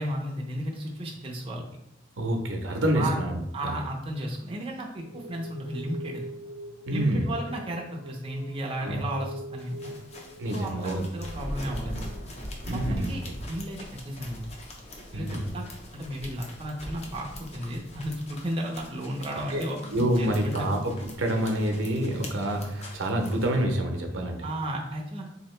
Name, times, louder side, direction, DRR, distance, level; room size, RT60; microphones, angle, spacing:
voice 1, 0.0-1.6 2.9-3.2 3.5-6.2 6.9-10.0 10.5-12.1 12.7-13.2 13.5-14.5 15.1-15.7 15.9-19.8 20.2-20.7 24.4-25.3, right 1 dB, 30° right, -1 dB, 0.5 m, -34 dB
voice 2, 2.2-3.8 6.9-7.3 8.8-9.0 10.4-11.0 12.6-13.1 15.1-15.4 19.5-20.9 21.2-24.5, right 1 dB, 80° right, 2 dB, 0.7 m, -27 dB
sound 1, 5.0-13.5 13.8-14.3 14.7-14.8 15.3-15.4 16.4-18.5 18.8-18.9 19.2-20.1, right 1 dB, 75° left, 0.8 m, -45 dB
sound 2, 9.6-23.6, left 2 dB, 35° left, 0.6 m, -47 dB
Thunder / Rain, 11.2-18.7, equal, 50° left, 1.5 m, -40 dB
3.6 x 2.8 x 3.1 m, 0.80 s
head